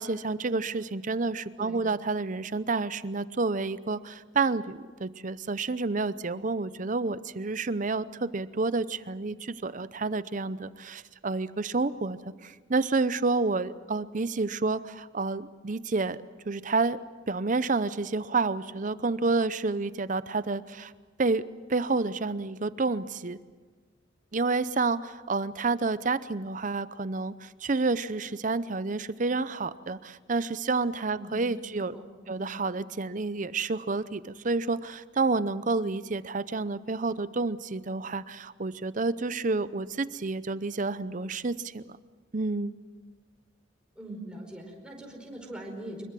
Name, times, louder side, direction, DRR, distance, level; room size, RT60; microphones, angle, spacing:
voice 1, 0.0-16.2 16.5-17.0 17.3-20.9 21.2-21.4 21.7-23.4 24.3-32.0 32.3-42.0 42.3-42.7, right 3 dB, 40° right, 15 dB, 0.7 m, -29 dB
voice 2, 31.9-32.4 43.9-46.0, right 1 dB, 5° right, 0 dB, 4.8 m, -42 dB
25.0 x 22.0 x 7.6 m, 1.4 s
head